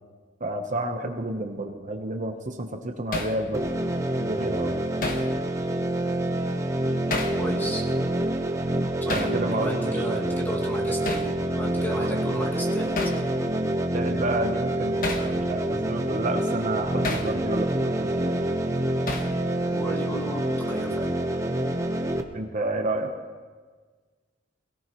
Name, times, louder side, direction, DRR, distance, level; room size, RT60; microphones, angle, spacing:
voice 1, 0.4-3.7 4.2-4.8 9.1-10.3 12.0-12.1 13.9-18.4 22.3-23.1, right 2 dB, 40° right, 4 dB, 1.0 m, -30 dB
Hammer, 3.1-3.4 5.0-5.3 7.1-7.4 9.1-9.4 11.1-11.3 13.0-13.2 15.0-15.3 17.0-17.3 19.1-19.4, left 3 dB, 50° left, 1.4 m, -29 dB
sound 1, 3.5-22.2, right 1 dB, 15° right, 1.0 m, -27 dB
voice 2, 7.4-7.9 9.0-12.9 19.7-21.1, right 1 dB, 10° left, -3 dB, 2.1 m, -34 dB
22.0 x 17.5 x 3.1 m, 1.5 s
head